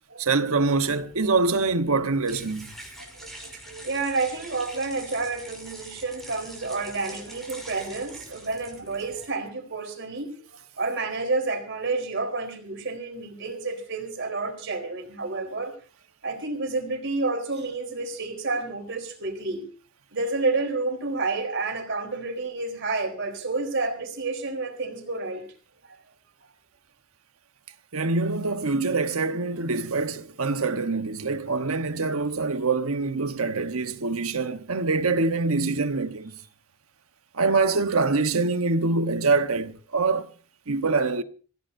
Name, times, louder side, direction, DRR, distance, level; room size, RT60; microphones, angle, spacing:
voice 1, 0.2-2.7 27.9-36.3 37.3-40.3 40.7-41.2, right 3 dB, 85° right, 1.2 m, -25 dB
sound 1, 0.7-9.2, right 1 dB, ahead, 5.7 m, -45 dB
voice 2, 3.0-10.3 10.8-15.7 16.2-19.7 20.1-25.5 25.8-26.0, right 3 dB, 60° right, 4.3 m, -30 dB
26.0 x 16.0 x 2.7 m
head